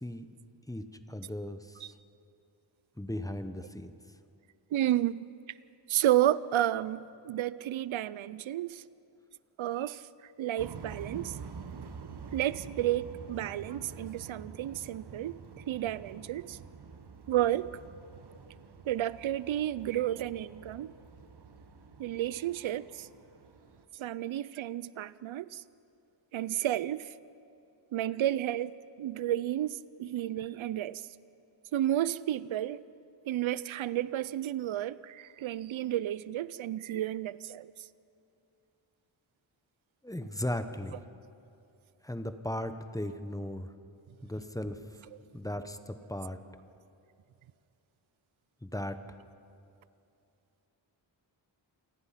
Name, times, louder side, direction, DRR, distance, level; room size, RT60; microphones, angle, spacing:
voice 1, 0.7-1.9 3.0-3.9 40.0-41.0 42.0-43.7 44.2-45.0 45.3-46.4 48.6-49.0, left 1 dB, 5° left, 9 dB, 0.9 m, -37 dB
voice 2, 4.7-5.3 5.9-8.8 9.6-10.0 10.4-11.4 12.3-15.4 15.7-16.6 17.3-17.7 18.8-20.9 22.0-23.1 23.9-25.6 26.3-27.1 27.9-28.7 29.0-31.0 31.7-32.8 33.3-37.7, right 13 dB, 85° right, 18 dB, 0.6 m, -31 dB
sound 1, 10.6-23.9, right 5 dB, 55° right, 1.3 m, -47 dB
27.0 x 18.5 x 5.8 m, 2.7 s
wide cardioid pair, 120°, 46 cm